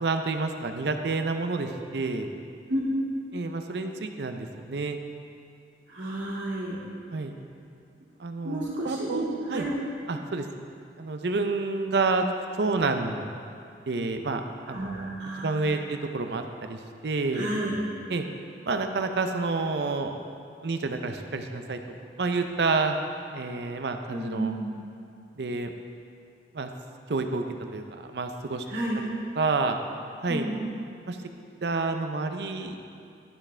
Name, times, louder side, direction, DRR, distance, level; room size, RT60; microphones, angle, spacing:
voice 1, 0.0-2.3 3.3-5.0 7.1-7.4 8.2-9.7 10.1-10.5 11.0-12.2 12.6-13.3 13.9-15.1 15.4-17.5 18.1-18.2 18.6-20.2 20.6-21.8 22.2-23.0 23.3-24.5 25.4-25.7 26.5-26.7 27.1-27.4 27.7-28.7 29.4-29.8 30.2-30.5 31.1-31.2 31.6-32.8, right 3 dB, 70° right, 6 dB, 0.6 m, -29 dB
voice 2, 5.9-6.8 8.4-9.2 9.5-9.6 14.7-15.7 17.3-17.8 24.1-24.8 28.7-29.0 30.3-30.7, right 1 dB, 90° right, -6 dB, 2.2 m, -31 dB
12.0 x 6.0 x 3.3 m, 2.4 s
head